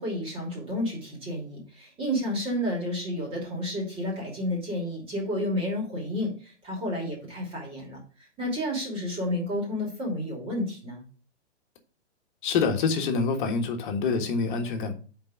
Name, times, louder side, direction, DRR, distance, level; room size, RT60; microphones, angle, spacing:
voice 1, 0.0-8.0 8.4-11.0, left 1 dB, 15° right, -2 dB, 2.7 m, -31 dB
voice 2, 12.4-15.0, left 5 dB, 45° left, 4 dB, 1.5 m, -26 dB
5.4 x 4.8 x 6.0 m, 0.39 s
hypercardioid pair, 150°, 36 cm